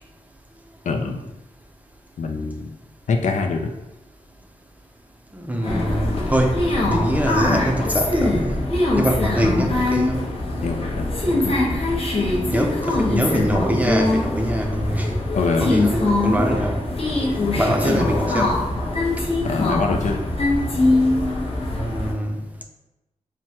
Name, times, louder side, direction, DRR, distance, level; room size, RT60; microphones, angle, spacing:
voice 1, 0.8-1.2 2.2-2.7 3.1-3.7 9.4-9.5 10.6-11.6 15.3-15.9 17.7-17.8 19.4-20.2, left 4 dB, 70° left, 4 dB, 0.4 m, -24 dB
voice 2, 5.3-8.6 9.0-10.2 12.5-15.1 15.6-16.8 17.6-18.6 21.8-22.4, right 1 dB, 10° right, 2 dB, 0.5 m, -23 dB
sound 1, 5.6-22.1, left 2 dB, 50° left, 0.9 m, -22 dB
6.0 x 2.1 x 2.8 m, 0.95 s
wide cardioid pair, 110°, 13 cm